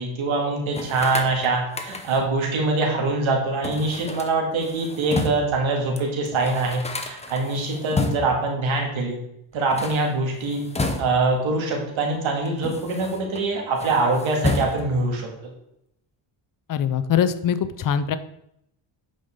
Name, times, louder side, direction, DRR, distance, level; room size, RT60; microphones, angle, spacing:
voice 1, 0.0-9.2 9.5-10.6 11.0-15.3, right 3 dB, 75° right, 0 dB, 2.2 m, -24 dB
sound 1, 0.7-2.4 3.6-5.6 6.0-6.1 6.3-8.5 9.6-11.4 12.1-13.4 13.7-15.1, left 2 dB, 15° left, 0.8 m, -31 dB
voice 2, 16.7-18.2, left 8 dB, 45° left, 12 dB, 0.6 m, -22 dB
8.5 x 5.5 x 3.7 m, 0.77 s
cardioid pair, 110°, 48 cm